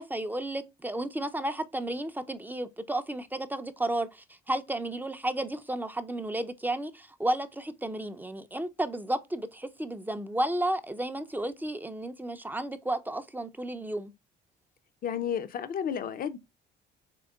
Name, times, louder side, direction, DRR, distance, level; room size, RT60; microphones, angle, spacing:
voice 1, 0.0-14.1, right 1 dB, 10° right, 0.5 m, -32 dB
voice 2, 15.0-16.4, left 8 dB, 45° left, 0.6 m, -32 dB
3.7 x 3.5 x 2.3 m
hypercardioid pair, 60°, 21 cm